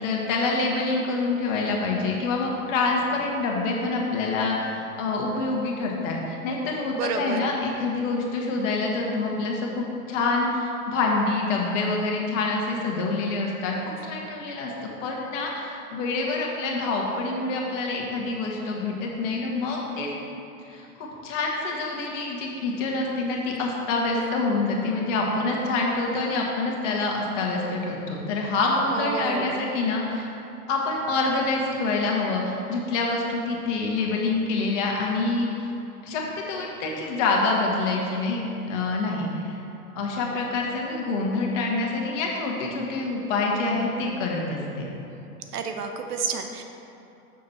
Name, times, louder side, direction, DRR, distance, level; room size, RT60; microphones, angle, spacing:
voice 1, 0.0-13.7 14.0-20.1 20.6-30.3 30.7-35.7 36.0-38.4 38.7-39.6 39.9-44.9, left 3 dB, 55° left, -1 dB, 1.6 m, -26 dB
voice 2, 6.9-7.6 28.9-29.6 45.5-46.6, right 5 dB, 75° right, 5 dB, 0.9 m, -30 dB
7.0 x 6.4 x 4.2 m, 2.8 s
hypercardioid pair, 100°, 46 cm